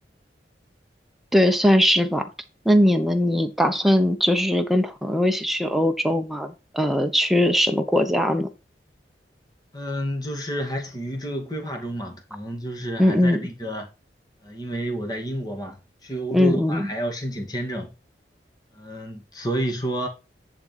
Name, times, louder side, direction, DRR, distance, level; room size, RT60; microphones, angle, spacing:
voice 1, 1.3-2.2 2.6-8.5 13.0-13.4 16.3-16.9, equal, ahead, 1.0 m, -20 dB
voice 2, 9.7-13.9 14.4-17.9 18.8-20.1, right 1 dB, 20° left, 2.1 m, -30 dB
10.5 x 3.9 x 5.2 m
head